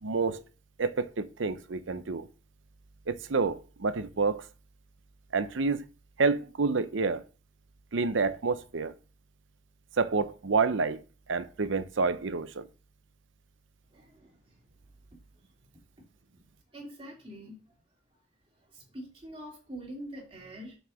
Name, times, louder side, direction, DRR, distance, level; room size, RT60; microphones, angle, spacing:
voice 1, 0.0-0.4 0.8-2.3 3.1-4.4 5.3-5.8 6.2-7.2 7.9-8.9 10.0-11.0 11.3-12.7, right 4 dB, 90° right, 0.7 m, -28 dB
voice 2, 13.9-14.4 16.7-17.5 18.7-20.8, right 1 dB, 30° right, 3.1 m, -44 dB
6.4 x 4.9 x 6.4 m
head